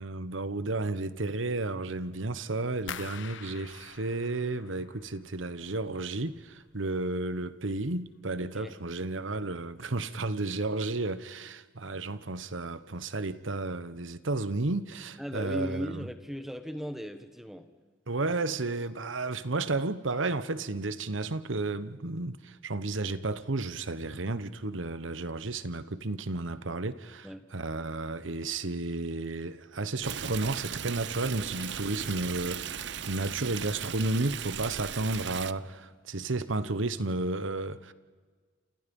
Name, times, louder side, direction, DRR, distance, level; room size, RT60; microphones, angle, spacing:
voice 1, 0.0-16.1 18.1-37.9, right 2 dB, 80° right, 1.2 m, -32 dB
sound 1, 2.9-5.7 6.0-6.7 7.1-7.5 7.9-8.1, left 7 dB, 75° left, 1.1 m, -45 dB
voice 2, 8.4-8.8 15.2-17.7 27.2-27.5, equal, ahead, 1.5 m, -37 dB
Stream, 30.0-35.5, right 8 dB, 65° right, 0.7 m, -37 dB
29.0 x 28.0 x 5.4 m
head